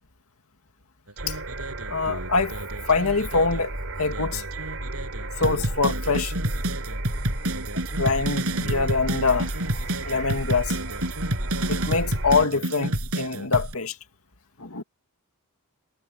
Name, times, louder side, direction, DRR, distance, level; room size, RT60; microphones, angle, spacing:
sound 1, 1.1-3.7 4.1-13.7, right 1 dB, 80° right, 7.7 m, -30 dB
sound 2, 1.2-12.5, right 2 dB, 65° right, 4.8 m, -34 dB
voice 1, 1.9-2.6 2.9-3.7 4.0-4.4 5.4-6.3 7.9-9.5 10.0-10.8 11.7-14.0 14.6-14.8, left 4 dB, 75° left, 2.2 m, -24 dB
head